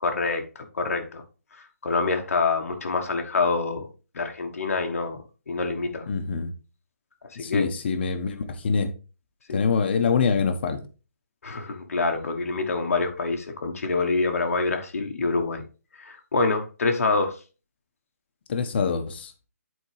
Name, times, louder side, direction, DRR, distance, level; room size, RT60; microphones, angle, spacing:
voice 1, 0.0-1.2 1.6-3.9 4.1-6.0 7.3-7.6 9.5-9.6 11.4-15.6 16.0-17.4, left 3 dB, 65° left, 1.2 m, -26 dB
voice 2, 6.1-6.5 7.4-8.9 9.5-10.8 18.5-19.3, left 5 dB, 40° left, 1.0 m, -25 dB
9.2 x 4.5 x 3.2 m
hypercardioid pair, 160°, 9 cm